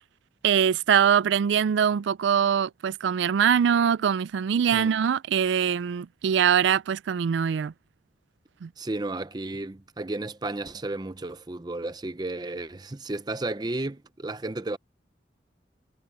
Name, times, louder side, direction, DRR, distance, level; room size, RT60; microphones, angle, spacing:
voice 1, 0.4-7.7 8.6-8.7, right 8 dB, 80° right, 0.4 m, -23 dB
voice 2, 8.8-14.8, right 2 dB, 20° right, 0.6 m, -33 dB
head